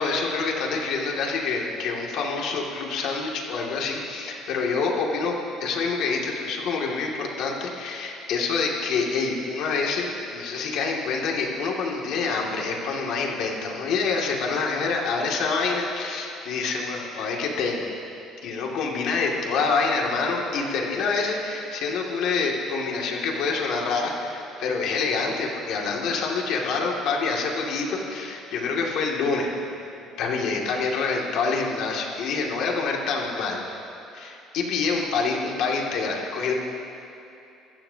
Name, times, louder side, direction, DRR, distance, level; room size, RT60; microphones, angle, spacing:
voice 1, 0.0-17.9 18.4-29.5 30.2-33.6 34.1-36.5, left 4 dB, 70° left, -1 dB, 2.3 m, -26 dB
25.5 x 14.5 x 2.8 m, 2.8 s
cardioid pair, 125°, 0 cm